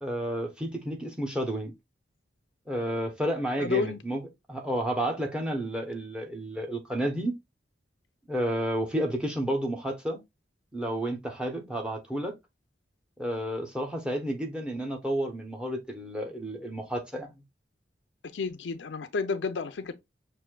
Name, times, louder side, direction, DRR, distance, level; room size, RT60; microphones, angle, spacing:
voice 1, 0.0-1.7 2.7-4.2 4.5-7.3 8.3-10.2 10.7-12.4 13.2-17.3, right 1 dB, 5° right, 0.7 m, -31 dB
voice 2, 3.6-4.0 18.3-19.9, left 4 dB, 75° left, 0.5 m, -31 dB
6.0 x 2.6 x 2.2 m
head